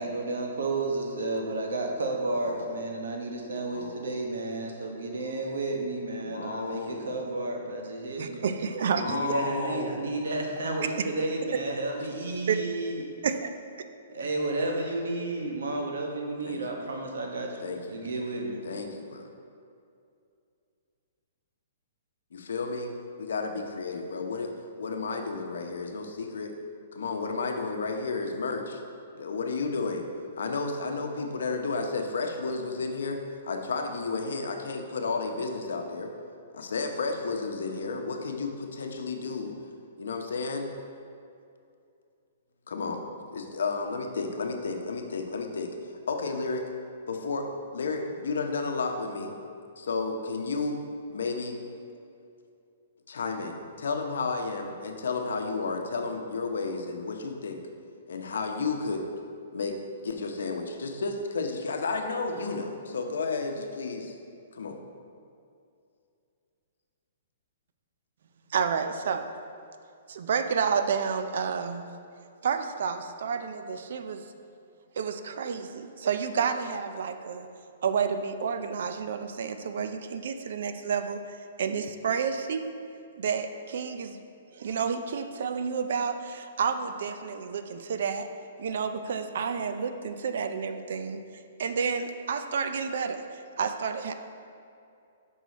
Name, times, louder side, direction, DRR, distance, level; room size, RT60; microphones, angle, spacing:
voice 1, 0.0-8.4 8.9-13.0 14.1-18.6, right 2 dB, 85° right, 1 dB, 1.1 m, -32 dB
voice 2, 2.2-2.7 3.6-4.2 6.2-7.1 8.8-10.1 16.4-17.0 17.6-17.8 18.6-19.3 22.3-22.9 23.2-24.5 24.8-26.5 26.9-28.8 29.2-30.1 30.4-36.1 36.5-39.5 40.0-40.7 42.7-43.0 43.3-45.7 46.1-46.7 47.1-49.3 49.8-50.8 51.1-51.6 53.1-57.6 58.1-59.1 59.5-64.2 64.5-64.8, left 4 dB, 85° left, 4 dB, 0.8 m, -32 dB
voice 3, 8.2-9.2 12.5-12.6 13.2-13.5 68.5-69.2 70.1-71.8 72.4-74.2 75.0-77.5 77.8-82.7 83.2-84.2 84.5-88.3 88.6-91.2 91.6-94.1, right 6 dB, 65° right, 8 dB, 0.4 m, -30 dB
6.4 x 5.4 x 4.1 m, 2.5 s
hypercardioid pair, 165°, 0 cm